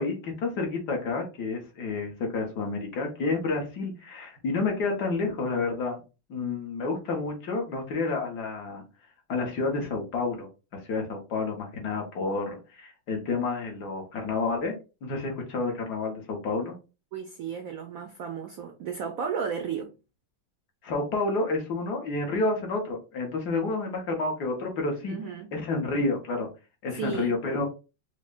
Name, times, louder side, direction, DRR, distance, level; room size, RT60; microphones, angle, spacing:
voice 1, 0.0-6.0 6.3-8.8 9.3-10.5 10.7-14.7 15.0-16.8 20.8-25.1 25.5-26.5 26.8-27.7, left 3 dB, 65° left, 1.5 m, -29 dB
voice 2, 17.1-19.9 25.1-25.5 26.9-27.4, right 6 dB, 80° right, 0.7 m, -34 dB
5.0 x 2.1 x 2.4 m
omnidirectional pair, 2.1 m